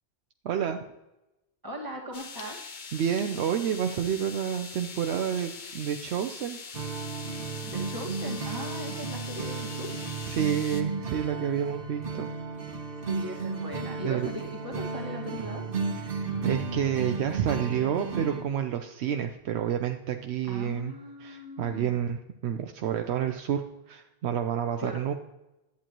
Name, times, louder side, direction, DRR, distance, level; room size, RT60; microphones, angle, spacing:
voice 1, 0.4-0.8 2.9-6.6 10.2-12.3 14.0-14.3 16.1-20.9 21.2-25.1, right 9 dB, 85° right, 5 dB, 0.9 m, -29 dB
voice 2, 1.6-2.6 7.6-10.0 13.1-15.7 20.4-22.0 24.8-25.1, equal, 20° right, -2 dB, 1.8 m, -39 dB
sound 1, 2.1-10.8, left 5 dB, 50° left, 1.0 m, -42 dB
sound 2, 6.7-18.4, right 4 dB, 60° right, 1.2 m, -34 dB
11.5 x 8.4 x 3.0 m, 0.97 s
omnidirectional pair, 1.1 m